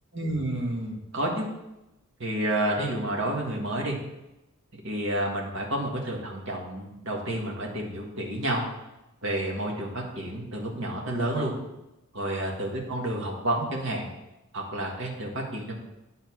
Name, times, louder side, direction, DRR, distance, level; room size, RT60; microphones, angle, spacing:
voice 1, 0.1-1.5 2.2-4.0 4.8-8.6 9.2-11.5 12.1-14.1 14.5-15.7, right 1 dB, 60° right, -1 dB, 1.7 m, -30 dB
9.1 x 4.0 x 6.1 m, 0.95 s
head